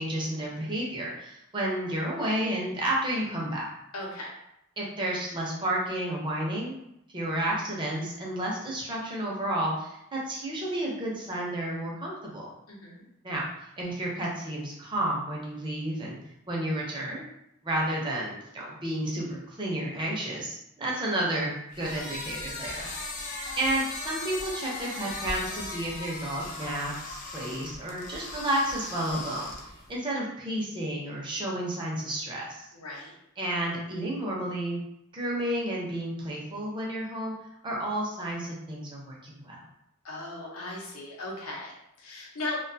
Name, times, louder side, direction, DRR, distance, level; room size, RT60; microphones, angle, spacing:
voice 1, 0.0-3.6 4.8-6.7 7.1-12.5 13.2-13.5 13.8-16.2 16.5-17.2 17.6-22.9 23.6-29.5 29.9-32.7 33.4-34.8 35.1-37.3 37.6-39.6, right 1 dB, 20° right, -4 dB, 0.5 m, -31 dB
voice 2, 3.9-4.3 12.7-13.0 32.7-33.1 40.0-42.6, left 2 dB, 85° left, -2 dB, 0.7 m, -37 dB
sound 1, 21.7-29.9, left 2 dB, 40° left, 0.4 m, -38 dB
2.4 x 2.2 x 2.6 m, 0.80 s
head